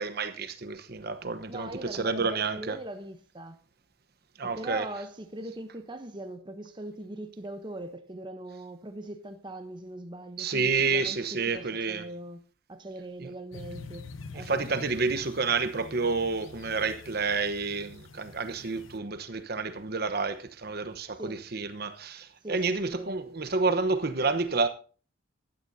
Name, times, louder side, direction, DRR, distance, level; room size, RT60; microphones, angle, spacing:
voice 1, 0.0-2.8 4.4-4.9 10.4-12.0 13.2-13.3 14.3-24.7, right 4 dB, 55° right, 1.0 m, -29 dB
voice 2, 1.5-3.6 4.4-12.4 12.7-14.1 14.3-14.9 21.2-21.4 22.4-23.2, right 1 dB, 25° right, 0.9 m, -41 dB
sound 1, 13.5-19.0, left 4 dB, 90° left, 1.0 m, -46 dB
16.0 x 12.0 x 2.8 m
head